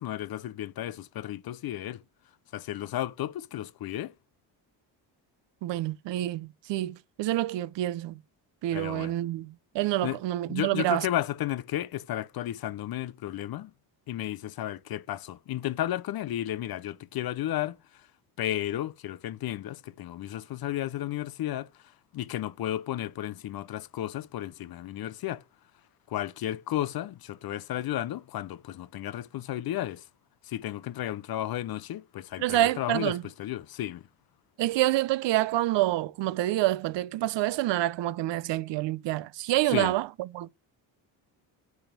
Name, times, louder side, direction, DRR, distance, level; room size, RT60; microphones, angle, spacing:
voice 1, 0.0-2.0 2.5-4.1 8.7-9.1 10.0-10.2 10.5-13.7 14.1-18.1 18.4-21.7 22.1-25.4 26.1-30.0 30.4-34.0 39.7-39.9, left 13 dB, 55° left, 0.6 m, -33 dB
voice 2, 5.6-8.2 8.6-11.1 32.4-33.2 34.6-40.1 40.3-40.5, right 15 dB, 70° right, 0.6 m, -27 dB
8.6 x 3.5 x 6.8 m
cardioid pair, 95°, 45 cm